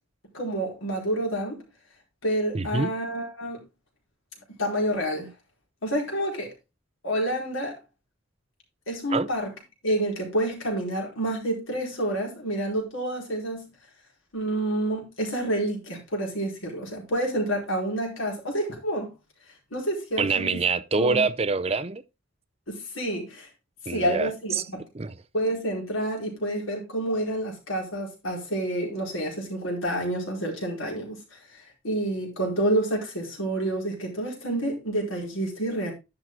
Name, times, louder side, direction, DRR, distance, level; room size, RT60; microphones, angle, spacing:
voice 1, 0.3-1.6 2.2-3.6 4.6-5.3 5.8-6.5 7.0-7.8 8.9-9.5 9.8-13.7 14.3-19.1 19.7-20.6 21.0-21.2 22.7-23.5 23.9-24.8 25.3-31.2 31.5-35.9, right 1 dB, 85° left, 4.5 m, -28 dB
voice 2, 2.5-2.9 9.1-9.3 20.2-22.0 23.9-24.7 24.9-25.1, right 4 dB, 30° right, 0.5 m, -25 dB
10.5 x 6.3 x 3.8 m
head